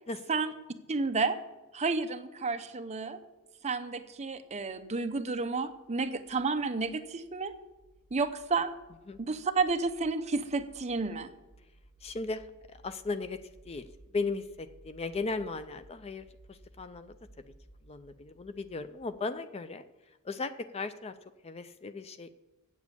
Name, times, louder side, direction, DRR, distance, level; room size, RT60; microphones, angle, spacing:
voice 1, 0.9-1.4 1.7-3.3 3.6-7.5 8.1-8.7 9.2-11.3, right 4 dB, 30° right, 8 dB, 0.6 m, -31 dB
sound 1, 4.0-19.3, right 1 dB, 85° left, 4.3 m, -60 dB
voice 2, 12.0-12.4 12.7-13.4 13.7-13.9 14.1-17.1 17.9-19.9 20.2-21.1 21.4-22.3, left 3 dB, 30° left, 11 dB, 0.4 m, -36 dB
8.1 x 7.2 x 8.2 m, 1.1 s
head